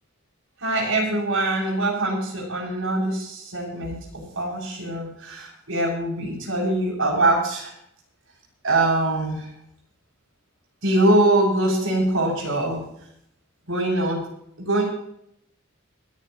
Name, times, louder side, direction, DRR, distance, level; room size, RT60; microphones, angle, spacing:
voice 1, 0.6-7.7 8.6-9.5 10.8-12.8 13.7-14.2 14.6-14.8, right 1 dB, 70° right, -3 dB, 6.9 m, -23 dB
29.5 x 10.5 x 3.0 m, 0.72 s
head